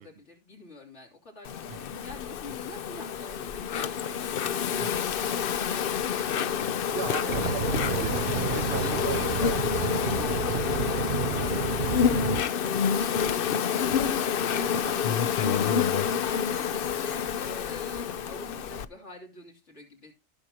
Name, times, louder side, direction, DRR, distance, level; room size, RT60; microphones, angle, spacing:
voice 1, 0.0-7.6 8.8-20.1, left 2 dB, 80° left, 3.3 m, -46 dB
Insect, 1.4-18.9, left 8 dB, 60° left, 0.7 m, -28 dB
voice 2, 6.9-9.5 14.7-15.1, right 8 dB, 60° right, 0.9 m, -37 dB
sound 1, 7.3-12.4, right 7 dB, 85° right, 1.1 m, -31 dB
15.0 x 6.3 x 2.9 m
omnidirectional pair, 1.2 m